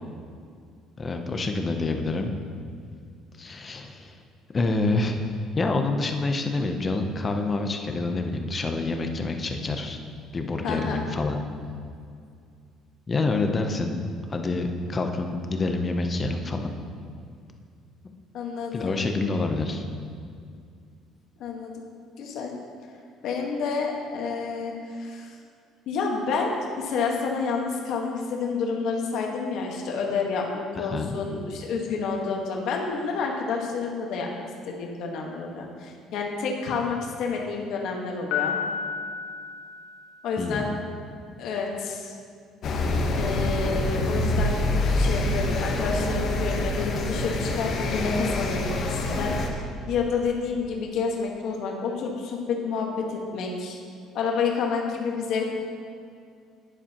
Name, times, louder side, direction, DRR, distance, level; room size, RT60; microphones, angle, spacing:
voice 1, 1.0-2.3 3.4-4.2 4.5-10.0 10.3-11.4 13.1-14.0 14.3-16.7 18.0-18.1 18.7-19.8 30.7-31.1 40.4-40.7, left 3 dB, 20° left, 5 dB, 0.6 m, -27 dB
voice 2, 10.6-11.0 18.3-18.9 21.4-21.7 22.2-22.5 23.2-25.3 25.9-26.5 26.8-34.3 34.7-38.6 40.2-40.7 41.4-42.1 43.2-44.6 45.0-53.8 54.1-55.4, left 5 dB, 55° left, 0 dB, 1.3 m, -29 dB
Piano, 38.3-40.4, left 7 dB, 75° left, 1.3 m, -31 dB
sound 1, 42.6-49.5, left 2 dB, 40° left, 1.0 m, -26 dB
11.5 x 10.0 x 2.9 m, 2.3 s
cardioid pair, 170°, 0 cm